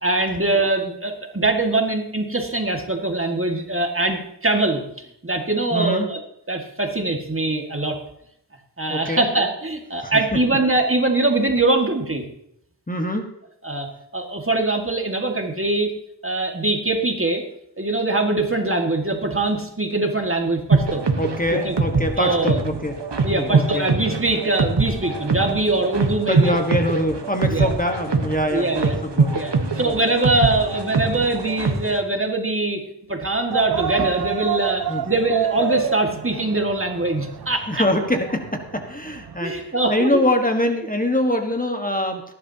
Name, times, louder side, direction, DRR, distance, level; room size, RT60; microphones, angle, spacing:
voice 1, 0.0-6.2 6.5-8.0 8.8-12.2 13.6-13.9 14.1-15.9 16.2-17.4 17.8-21.0 21.5-21.7 22.2-22.6 23.2-26.5 27.5-27.7 28.5-29.0 29.3-32.8 33.1-37.9 39.4-40.2, right 2 dB, 30° right, 3 dB, 2.0 m, -22 dB
voice 2, 5.7-6.1 8.9-9.2 10.0-10.4 12.9-13.3 21.2-23.0 23.2-23.9 26.3-29.3 29.6-29.9 34.9-35.0 37.7-42.2, left 1 dB, 20° left, 4 dB, 1.5 m, -24 dB
sound 1, 20.7-32.0, right 4 dB, 80° right, 1.4 m, -23 dB
sound 2, 33.5-39.4, right 8 dB, 60° right, 0.6 m, -28 dB
18.5 x 11.0 x 2.9 m, 0.76 s
wide cardioid pair, 45°, 41 cm